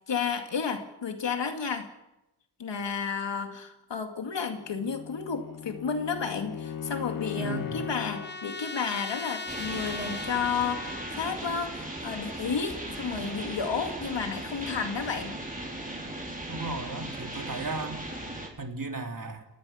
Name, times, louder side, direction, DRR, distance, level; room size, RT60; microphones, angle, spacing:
voice 1, 0.1-1.9 2.6-15.4, left 6 dB, 80° left, 6 dB, 2.4 m, -32 dB
Bowed string instrument, 4.5-8.4, left 8 dB, 50° left, 0.8 m, -38 dB
Trumpet, 6.6-11.4, left 3 dB, 25° left, 1.5 m, -40 dB
voice 2, 7.4-7.8 16.5-18.0 18.6-19.5, right 3 dB, 50° right, 4 dB, 2.9 m, -35 dB
sound 1, 9.5-18.5, right 1 dB, 20° right, 5.3 m, -37 dB
29.5 x 18.0 x 5.8 m, 0.93 s
wide cardioid pair, 75°, 43 cm